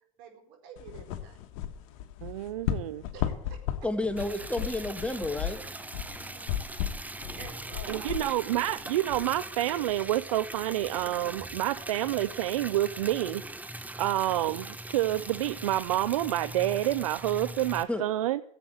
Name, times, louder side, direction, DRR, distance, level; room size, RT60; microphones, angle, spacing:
voice 1, 0.2-1.4 3.1-3.6 6.0-6.6 7.4-8.3, right 5 dB, 65° right, 2 dB, 4.7 m, -49 dB
sound 1, 0.8-9.2, left 11 dB, 70° left, 1.3 m, -36 dB
voice 2, 2.2-3.0 7.9-13.4 14.0-18.4, right 14 dB, 85° right, 16 dB, 0.4 m, -28 dB
voice 3, 3.8-5.6 7.2-7.4 17.9-18.0, left 2 dB, 5° left, 8 dB, 1.5 m, -31 dB
Liquid, 4.2-17.8, right 2 dB, 10° right, 0.9 m, -41 dB
16.0 x 8.1 x 7.8 m, 0.74 s
hypercardioid pair, 75°, 17 cm